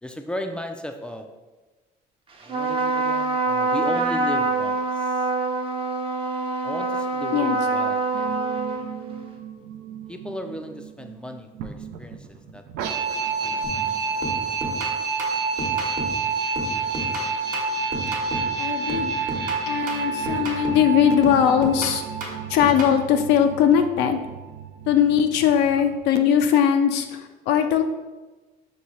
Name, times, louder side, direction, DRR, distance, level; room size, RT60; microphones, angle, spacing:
voice 1, 0.0-1.3 2.4-5.3 6.6-8.4 10.1-12.3 12.5-12.6 13.4-14.2, equal, 5° left, 5 dB, 0.3 m, -36 dB
Trumpet, 2.4-9.3, right 3 dB, 35° right, 0.7 m, -25 dB
sound 1, 8.1-26.0, right 4 dB, 90° right, 0.5 m, -29 dB
sound 2, 13.6-13.9 14.2-16.2 16.5-18.6 18.9-20.9 21.2-23.0, right 1 dB, 50° right, 1.0 m, -33 dB
voice 2, 18.6-19.1 19.7-22.0 22.5-24.2 24.9-27.8, left 8 dB, 90° left, 6 dB, 0.4 m, -20 dB
5.4 x 2.8 x 3.0 m, 1.2 s
cardioid pair, 110°, 17 cm